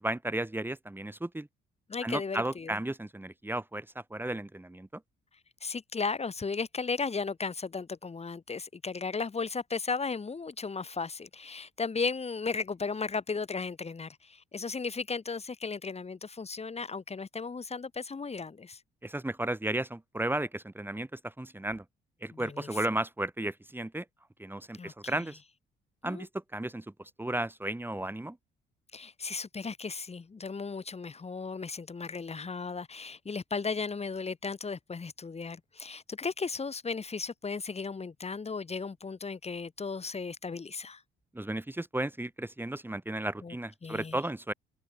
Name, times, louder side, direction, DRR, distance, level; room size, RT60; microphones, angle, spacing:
voice 1, 0.0-1.5 2.0-4.9 19.0-21.8 22.2-24.0 24.4-25.4 26.0-26.8 27.2-28.4 41.3-44.5, right 1 dB, 10° right, 3.9 m, -34 dB
voice 2, 1.9-2.8 5.6-18.8 22.3-22.8 24.8-25.3 26.0-26.3 28.9-41.0 43.4-43.6 43.8-44.2, left 4 dB, 30° left, 5.6 m, -35 dB
cardioid pair, 90°, 20 cm